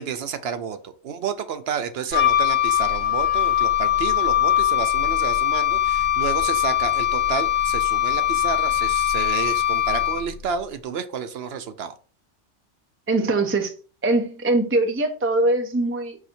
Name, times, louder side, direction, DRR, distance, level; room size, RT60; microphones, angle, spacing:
voice 1, 0.0-11.9, right 7 dB, 65° right, 0.8 m, -30 dB
Wind instrument woodwind instrument, 2.1-10.4, left 12 dB, 50° left, 0.7 m, -21 dB
voice 2, 13.1-13.7 14.0-16.2, right 2 dB, 20° right, 0.3 m, -22 dB
4.8 x 2.7 x 4.2 m
omnidirectional pair, 1.2 m